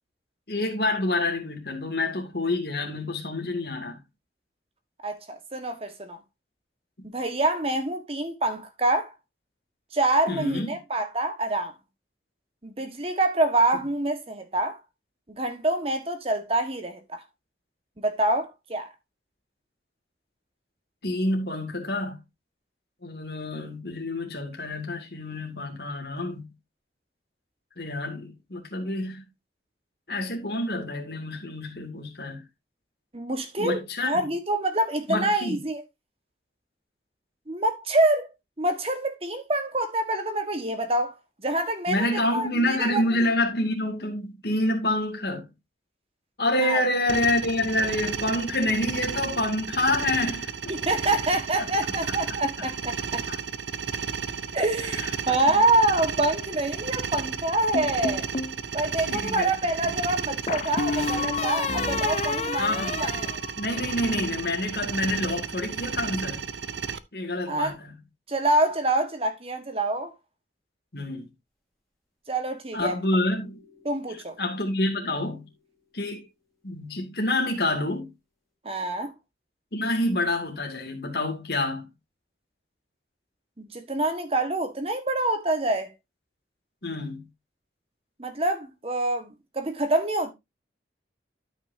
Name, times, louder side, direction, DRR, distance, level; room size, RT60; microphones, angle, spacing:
voice 1, 0.5-4.0 10.3-10.7 21.0-22.2 23.0-26.5 27.8-29.2 30.1-32.4 33.6-34.2 35.1-35.6 41.9-45.5 46.4-50.5 52.1-52.2 52.6-52.7 53.3-53.4 55.0-55.7 59.1-59.5 62.6-62.9 63.6-66.4 67.1-67.9 70.9-71.3 72.7-73.6 74.4-75.5 75.9-76.3 76.6-78.1 79.7-81.9 86.8-87.2, left 1 dB, 60° left, 2.5 m, -27 dB
voice 2, 5.0-6.2 7.0-9.1 9.9-11.7 12.6-14.8 15.3-17.2 18.0-18.9 33.1-35.8 37.5-38.3 38.6-43.0 46.6-46.8 50.7-53.2 54.5-58.2 58.7-63.3 67.5-67.7 68.3-70.1 72.3-73.0 73.8-74.4 78.6-79.1 83.6-85.9 88.2-90.3, right 2 dB, 30° right, 1.5 m, -26 dB
sound 1, 47.1-67.0, right 6 dB, 80° right, 0.6 m, -33 dB
sound 2, 57.7-58.6 60.5-64.1, left 4 dB, 35° left, 0.5 m, -30 dB
sound 3, 72.8-76.8, left 2 dB, ahead, 3.0 m, -54 dB
13.0 x 5.9 x 2.7 m
head